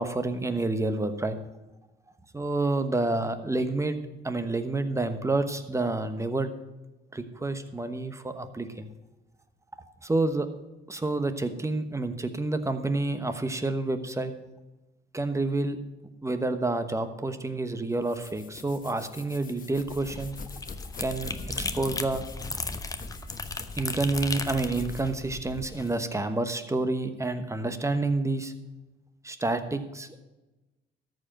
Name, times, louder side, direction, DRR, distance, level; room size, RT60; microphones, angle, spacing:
voice 1, 0.0-1.4 2.3-4.0 4.2-6.5 7.1-8.9 10.0-10.5 10.9-14.3 15.1-15.8 16.2-20.3 21.0-22.2 22.6-22.7 23.8-28.5 29.2-30.1, right 2 dB, 15° right, 9 dB, 1.1 m, -29 dB
sound 1, 17.9-26.2, left 6 dB, 45° left, 1.0 m, -47 dB
sound 2, 19.8-25.9, left 3 dB, 15° left, 0.8 m, -36 dB
13.5 x 5.0 x 7.6 m, 1.1 s
cardioid pair, 90°, 20 cm